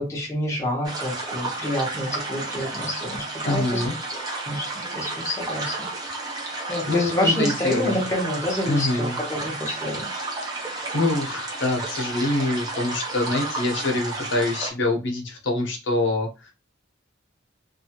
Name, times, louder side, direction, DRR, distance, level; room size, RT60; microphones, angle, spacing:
voice 1, 0.0-3.8 4.5-5.9 6.7-10.1, left 1 dB, 15° left, -2 dB, 0.9 m, -28 dB
sound 1, 0.8-14.7, right 2 dB, 20° right, 0.8 m, -32 dB
voice 2, 3.4-3.9 6.9-7.9 8.6-9.2 10.6-16.5, left 2 dB, 65° left, 1 dB, 0.8 m, -25 dB
2.7 x 2.4 x 2.8 m, 0.28 s
head